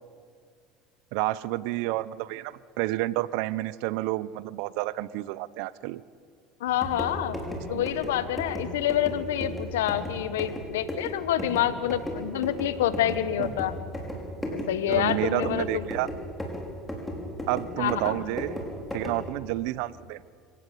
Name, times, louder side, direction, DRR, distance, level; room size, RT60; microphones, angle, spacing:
voice 1, 1.1-6.0 7.7-7.9 13.4-13.5 14.9-16.1 17.5-18.5 18.9-20.2, right 17 dB, 70° right, 19 dB, 0.7 m, -30 dB
voice 2, 6.6-7.4 7.7-13.7 14.5-15.8 17.8-18.2, left 11 dB, 90° left, 13 dB, 1.3 m, -27 dB
sound 1, 6.7-19.3, left 1 dB, 10° left, 5.5 m, -36 dB
25.5 x 17.5 x 8.5 m, 2.1 s
supercardioid pair, 100°, 0 cm